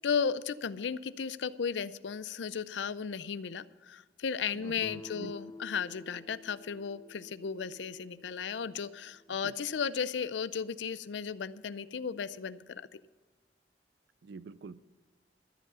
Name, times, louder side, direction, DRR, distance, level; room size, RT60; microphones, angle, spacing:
voice 1, 0.0-13.0, left 6 dB, 90° left, 16 dB, 0.5 m, -35 dB
voice 2, 4.5-5.3 9.3-9.5 14.2-14.8, right 4 dB, 75° right, 16 dB, 0.4 m, -47 dB
Guitar, 4.8-9.6, left 2 dB, 15° left, 0.5 m, -51 dB
13.0 x 7.4 x 6.8 m, 1.4 s
head